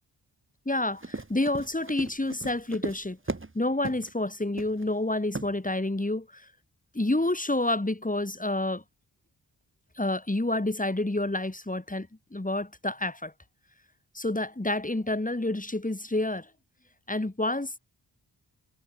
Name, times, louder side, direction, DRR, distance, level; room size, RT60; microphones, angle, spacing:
voice 1, 0.7-3.2 3.5-6.5 6.9-8.8 10.0-13.3 14.1-16.5 17.1-17.8, left 2 dB, 15° left, 4.2 m, -29 dB
Run, 0.9-3.5 3.8-4.1 4.6-4.9 5.3-5.5, right 3 dB, 25° right, 3.0 m, -36 dB
cardioid pair, 40°, 45 cm